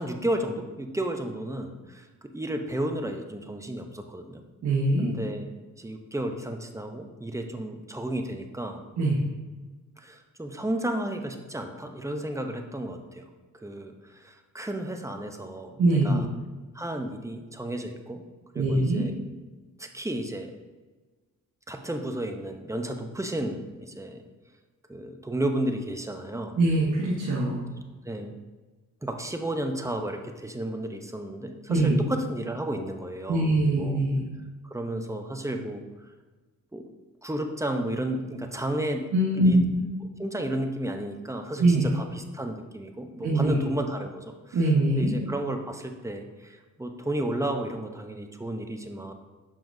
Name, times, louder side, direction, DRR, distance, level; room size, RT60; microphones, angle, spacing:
voice 1, 0.0-2.1 2.3-4.4 5.0-5.5 5.8-8.8 10.0-13.3 13.5-16.3 16.7-18.2 18.5-19.2 19.8-20.5 21.7-24.2 24.9-26.6 28.0-28.3 29.0-34.0 34.6-36.1 36.7-36.8 37.2-39.0 39.4-39.6 40.2-49.1, right 1 dB, 10° right, 4 dB, 0.8 m, -33 dB
voice 2, 4.6-5.1 9.0-9.2 15.8-16.2 18.5-19.1 26.6-27.6 31.7-32.0 33.3-34.2 39.1-39.8 41.6-41.9 43.2-43.6 44.5-45.1, right 2 dB, 65° right, -5 dB, 1.4 m, -22 dB
6.9 x 5.8 x 2.7 m, 1.3 s
cardioid pair, 70°, 32 cm